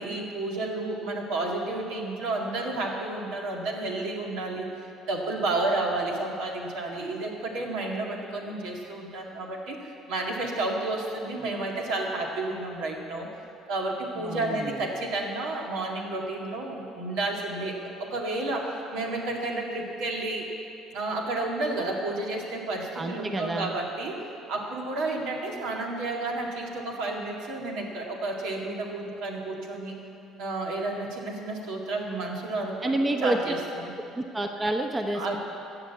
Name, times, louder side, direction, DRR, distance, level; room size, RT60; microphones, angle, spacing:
voice 1, 0.0-13.3 13.7-20.5 20.9-30.0 30.4-33.8 35.1-35.4, right 2 dB, 80° right, 0 dB, 2.1 m, -31 dB
voice 2, 14.2-14.8 22.9-23.7 32.8-33.5 34.1-35.4, right 1 dB, 20° right, 4 dB, 0.9 m, -29 dB
15.0 x 6.7 x 8.2 m, 2.7 s
supercardioid pair, 85°, 0 cm